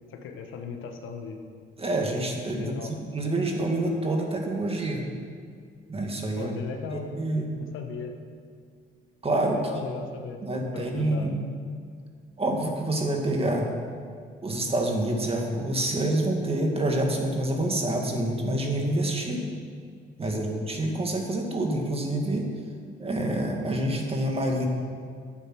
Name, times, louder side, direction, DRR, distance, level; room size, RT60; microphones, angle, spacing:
voice 1, 0.1-1.4 2.6-3.0 6.4-8.1 9.5-11.3 20.2-20.5, left 5 dB, 85° left, 4 dB, 1.4 m, -38 dB
voice 2, 1.8-2.8 3.1-5.0 5.9-6.5 6.9-7.5 9.2-9.6 10.4-11.4 12.4-13.7 14.4-19.5 20.2-22.5 23.0-24.7, right 1 dB, 30° right, 1 dB, 2.2 m, -27 dB
12.0 x 8.9 x 6.4 m, 2.2 s
cardioid pair, 90°, 20 cm